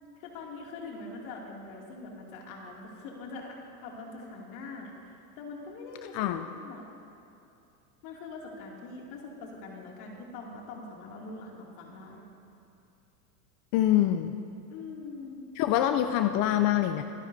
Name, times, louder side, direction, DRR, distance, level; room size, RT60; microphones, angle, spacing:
voice 1, 0.2-6.2 6.6-6.8 8.0-12.3 14.7-15.5, left 3 dB, 60° left, -1 dB, 2.6 m, -43 dB
voice 2, 6.1-6.4 13.7-14.3 15.6-17.0, left 12 dB, 40° left, 8 dB, 0.5 m, -25 dB
24.0 x 11.0 x 2.7 m, 2.7 s
supercardioid pair, 120°, 48 cm